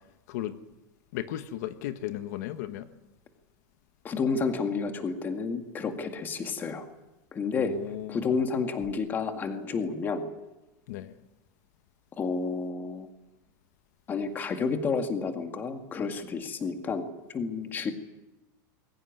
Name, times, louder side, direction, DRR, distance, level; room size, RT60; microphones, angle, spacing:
voice 1, 1.1-2.9 7.6-8.3 10.9-11.1, left 13 dB, 60° left, 9 dB, 1.3 m, -35 dB
voice 2, 4.0-6.9 7.3-7.7 8.1-10.3 12.2-13.1 14.1-17.1 17.3-17.9, left 5 dB, 20° left, 6 dB, 2.0 m, -30 dB
21.5 x 18.0 x 9.6 m, 0.99 s
supercardioid pair, 170°, 10 cm